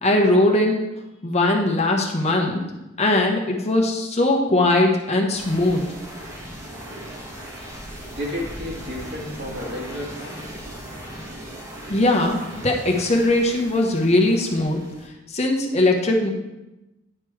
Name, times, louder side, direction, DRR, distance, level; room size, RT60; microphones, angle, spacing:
voice 1, 0.0-0.8 1.2-2.6 3.0-5.9 11.9-14.8 15.3-16.3, left 2 dB, 35° left, 2 dB, 1.0 m, -20 dB
sound 1, 5.3-15.1, equal, 15° right, 1.4 m, -38 dB
voice 2, 8.1-10.4, left 1 dB, 55° right, -2 dB, 2.2 m, -32 dB
9.9 x 5.3 x 4.7 m, 0.97 s
head